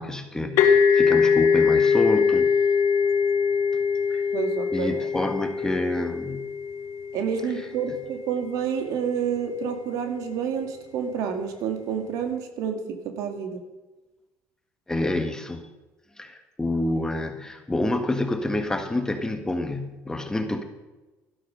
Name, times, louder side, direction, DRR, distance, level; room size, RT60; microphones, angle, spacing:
voice 1, 0.0-2.5 4.1-4.2 4.7-6.5 14.9-15.7 16.2-20.6, left 2 dB, 10° left, 6 dB, 1.6 m, -28 dB
sound 1, 0.6-8.1, left 6 dB, 75° left, 1.3 m, -22 dB
voice 2, 4.3-5.0 7.1-13.6, right 7 dB, 75° right, 6 dB, 2.1 m, -29 dB
12.5 x 12.0 x 5.3 m, 1.1 s
cardioid pair, 105°, 6 cm